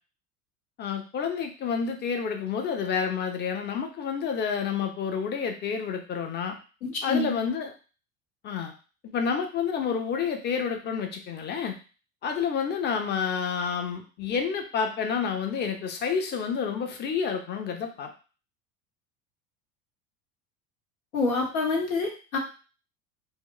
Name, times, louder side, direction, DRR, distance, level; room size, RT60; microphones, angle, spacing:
voice 1, 0.8-6.5 7.0-7.7 8.4-8.7 9.0-11.8 12.2-18.1, left 6 dB, 25° left, 5 dB, 0.6 m, -29 dB
voice 2, 6.8-7.3 21.1-22.4, left 3 dB, 80° left, 0 dB, 1.0 m, -27 dB
2.4 x 2.1 x 3.8 m, 0.35 s
figure-of-eight pair, 70°, 41 cm